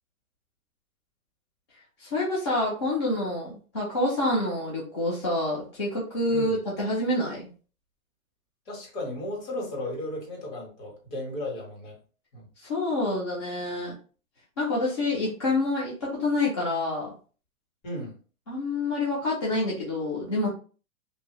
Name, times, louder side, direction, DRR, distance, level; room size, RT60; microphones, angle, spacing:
voice 1, 2.0-7.5 12.6-13.9 14.6-17.1 18.5-20.5, left 2 dB, 20° left, -4 dB, 0.4 m, -27 dB
voice 2, 8.7-12.0 12.3-12.5 17.8-18.1, left 1 dB, 45° left, -1 dB, 1.5 m, -35 dB
2.7 x 2.6 x 3.0 m, 0.37 s
hypercardioid pair, 155°, 42 cm